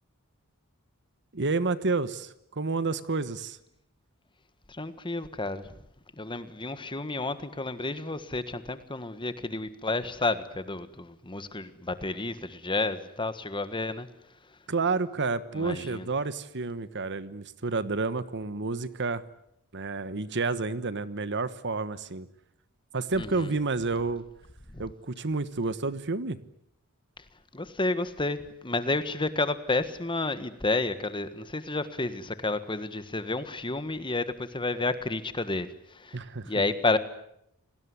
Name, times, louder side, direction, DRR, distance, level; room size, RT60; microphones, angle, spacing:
voice 1, 1.3-3.6 14.7-19.2 19.7-22.3 22.9-24.2 24.8-26.4 36.1-36.5, right 3 dB, 55° right, 1.3 m, -30 dB
voice 2, 4.7-5.7 6.2-14.1 15.5-16.1 23.2-23.5 24.7-24.9 27.5-36.2 36.4-37.0, left 2 dB, 20° left, 1.6 m, -31 dB
28.5 x 19.5 x 9.7 m
head